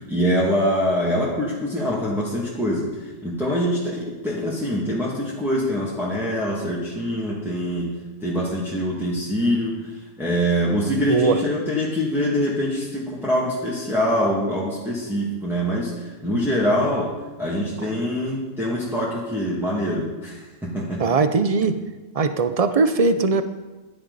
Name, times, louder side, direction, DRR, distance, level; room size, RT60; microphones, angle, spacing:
voice 1, 0.1-2.9 3.2-7.9 8.2-9.9 10.2-17.1 17.4-21.0, equal, ahead, -7 dB, 2.1 m, -24 dB
voice 2, 11.1-11.4 21.0-21.8 22.1-23.4, right 4 dB, 65° right, 10 dB, 0.3 m, -19 dB
16.0 x 11.0 x 4.1 m, 1.2 s
omnidirectional pair, 1.5 m